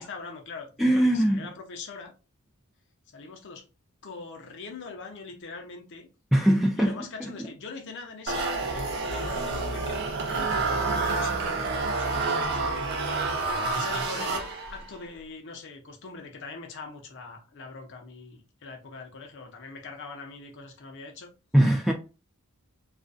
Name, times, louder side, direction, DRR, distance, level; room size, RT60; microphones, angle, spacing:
voice 1, 0.0-2.1 3.1-3.7 4.0-6.1 6.8-12.8 13.7-21.3, left 4 dB, 55° left, 0.6 m, -42 dB
voice 2, 0.8-1.5 6.3-6.9 7.2-7.5 21.5-21.9, right 1 dB, ahead, 0.3 m, -21 dB
sound 1, 8.3-14.9, right 3 dB, 50° right, 0.6 m, -28 dB
2.4 x 2.2 x 2.5 m
head